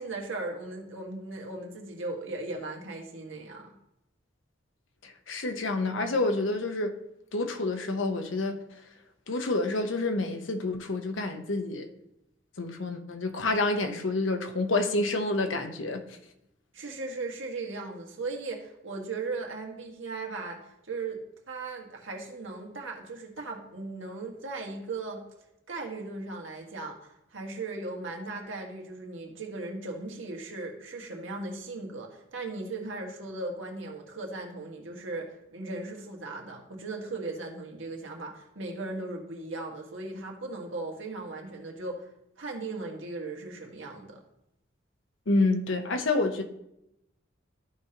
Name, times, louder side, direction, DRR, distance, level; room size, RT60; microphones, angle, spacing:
voice 1, 0.0-3.7 16.7-25.2 25.7-42.1 42.4-44.2, right 3 dB, 85° right, 1 dB, 1.6 m, -37 dB
voice 2, 5.0-7.0 7.3-8.6 9.3-11.9 12.6-16.0 45.3-46.4, left 2 dB, 85° left, 6 dB, 0.9 m, -28 dB
13.5 x 5.1 x 2.9 m, 0.83 s
head